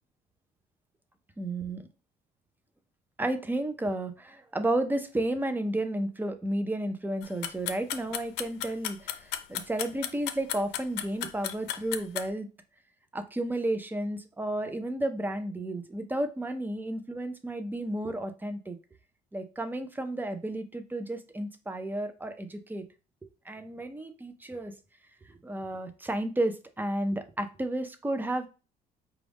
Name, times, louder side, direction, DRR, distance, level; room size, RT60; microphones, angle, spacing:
voice 1, 1.4-1.9 3.2-12.5 13.1-18.8 19.3-22.9 23.5-24.7 25.3-28.5, right 1 dB, 10° right, 8 dB, 0.5 m, -32 dB
sound 1, 7.2-12.3, left 11 dB, 85° left, 0.5 m, -34 dB
5.1 x 2.3 x 3.4 m, 0.32 s
cardioid pair, 110°, 17 cm